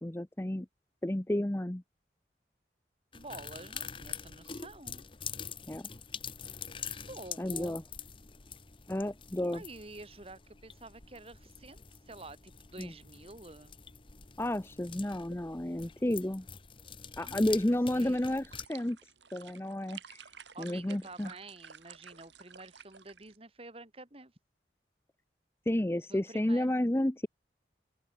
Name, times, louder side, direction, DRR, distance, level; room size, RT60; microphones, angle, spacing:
voice 1, 0.0-0.7 1.0-1.8 5.7-5.9 7.4-7.8 8.9-9.6 12.8-12.9 14.4-16.5 17.2-19.0 19.3-20.2 20.6-21.3 25.7-27.3, left 1 dB, 15° left, 0.6 m, -31 dB
sound 1, 3.1-18.7, left 7 dB, 30° left, 1.1 m, -45 dB
voice 2, 3.1-5.1 6.9-7.8 9.5-13.8 17.2-18.2 20.5-24.4 26.1-26.7, right 2 dB, 35° right, 2.4 m, -49 dB
sound 2, 18.0-23.4, right 7 dB, 90° right, 3.5 m, -53 dB
open air
head